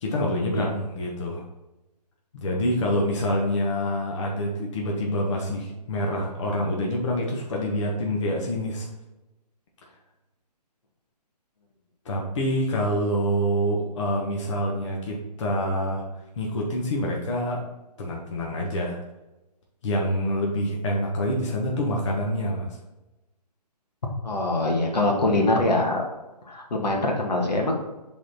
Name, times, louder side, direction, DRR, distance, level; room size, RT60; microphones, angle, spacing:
voice 1, 0.0-1.4 2.3-8.9 12.0-16.0 16.3-17.6 18.0-19.0 19.8-22.8, equal, 45° left, -2 dB, 1.4 m, -26 dB
voice 2, 24.2-26.0 26.5-27.7, left 2 dB, 80° left, 0 dB, 1.9 m, -23 dB
7.5 x 4.2 x 4.2 m, 1.0 s
hypercardioid pair, 150°, 21 cm